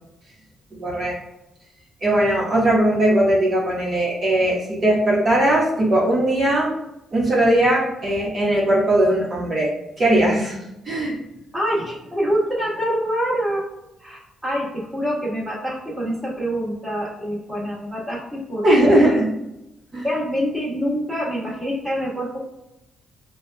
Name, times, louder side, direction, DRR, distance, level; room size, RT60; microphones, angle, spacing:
voice 1, 0.7-1.1 2.0-6.7 7.1-10.6 10.8-11.2 18.6-19.3 19.9-20.1, right 1 dB, 45° right, -6 dB, 1.1 m, -19 dB
voice 2, 11.5-13.6 14.0-19.2 20.0-22.4, equal, 5° right, -6 dB, 1.5 m, -26 dB
5.4 x 2.3 x 2.2 m, 0.92 s
cardioid pair, 90°, 0 cm